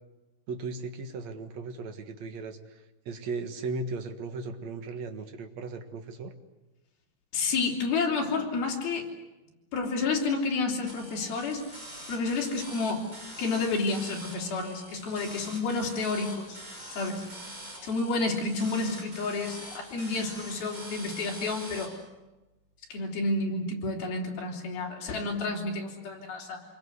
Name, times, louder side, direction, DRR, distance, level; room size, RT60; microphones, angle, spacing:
voice 1, 0.5-6.3, right 3 dB, 55° right, 6 dB, 2.3 m, -37 dB
voice 2, 7.3-9.1 9.7-11.6 12.1-13.0 13.4-16.6 17.0-17.2 17.8-21.9 22.9-26.6, left 3 dB, 65° left, 0 dB, 5.2 m, -30 dB
sound 1, 10.9-21.9, right 1 dB, 20° right, 7.0 m, -44 dB
27.0 x 22.0 x 8.1 m, 1.1 s
omnidirectional pair, 4.7 m